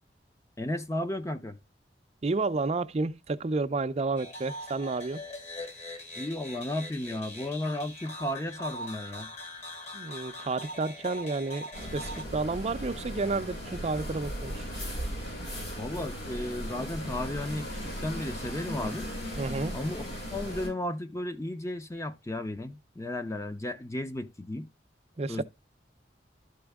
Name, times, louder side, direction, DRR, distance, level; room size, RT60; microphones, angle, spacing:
voice 1, 0.6-1.6 6.2-9.3 15.7-19.1 19.7-20.0 20.3-24.7 25.3-25.4, left 1 dB, 15° left, 0.7 m, -34 dB
voice 2, 2.2-5.2 9.9-14.7 19.4-19.8 25.2-25.4, right 3 dB, 35° right, 0.5 m, -31 dB
sound 1, 4.2-12.2, left 1 dB, 40° left, 1.9 m, -41 dB
sound 2, 11.7-20.7, equal, 65° left, 5.9 m, -37 dB
12.0 x 4.4 x 3.5 m
head